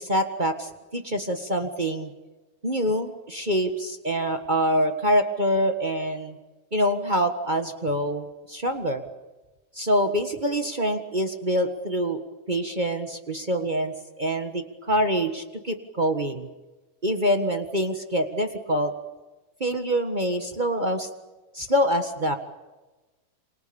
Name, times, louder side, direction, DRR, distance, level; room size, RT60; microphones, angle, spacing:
voice 1, 0.0-2.1 2.6-6.4 6.7-9.0 9.7-12.2 12.5-16.5 17.0-18.9 19.6-21.1 21.5-22.3, equal, 40° right, 6 dB, 0.6 m, -25 dB
28.5 x 26.5 x 7.1 m, 1.2 s
omnidirectional pair, 3.7 m